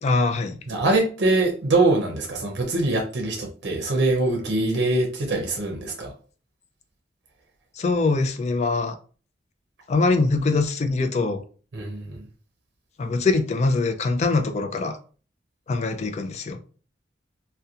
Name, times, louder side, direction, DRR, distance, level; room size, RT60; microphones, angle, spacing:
voice 1, 0.0-0.6 7.7-9.0 9.9-11.4 13.0-15.0 15.7-16.6, left 3 dB, 40° left, 0.3 m, -23 dB
voice 2, 0.7-6.1 11.7-12.2, right 2 dB, 70° right, 0.6 m, -23 dB
2.7 x 2.1 x 2.4 m
head